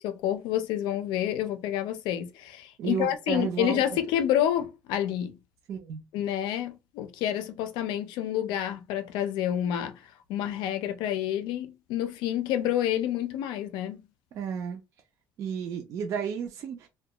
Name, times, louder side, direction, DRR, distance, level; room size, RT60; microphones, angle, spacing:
voice 1, 0.0-5.4 6.1-10.0 10.3-14.0, left 11 dB, 85° left, 0.4 m, -28 dB
voice 2, 2.8-4.0 5.7-6.0 14.3-14.8 15.4-16.9, right 7 dB, 45° right, 0.4 m, -32 dB
2.2 x 2.2 x 2.8 m
cardioid pair, 180°, 7 cm